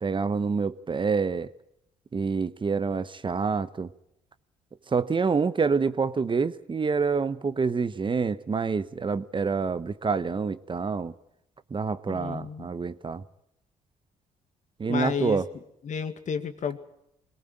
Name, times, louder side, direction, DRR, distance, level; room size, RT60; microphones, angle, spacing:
voice 1, 0.0-1.5 2.1-3.9 4.9-11.1 11.7-13.2 14.8-15.4, right 5 dB, 35° right, 13 dB, 1.1 m, -27 dB
voice 2, 12.1-12.7 14.9-15.4 15.8-16.8, left 7 dB, 55° left, 9 dB, 2.1 m, -31 dB
22.0 x 18.5 x 9.1 m, 0.78 s
supercardioid pair, 65°, 15 cm